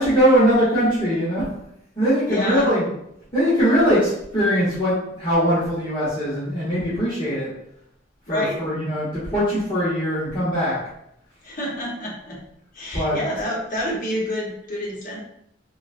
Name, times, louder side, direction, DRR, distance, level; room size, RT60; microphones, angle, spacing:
voice 1, 0.0-1.5 2.0-2.8 3.3-7.5 8.3-10.8 12.9-13.2, equal, 25° left, -12 dB, 1.0 m, -21 dB
voice 2, 2.3-2.7 8.3-8.6 11.4-12.4 12.7-15.2, left 1 dB, 45° left, -4 dB, 1.0 m, -28 dB
3.8 x 2.2 x 2.5 m, 0.76 s
head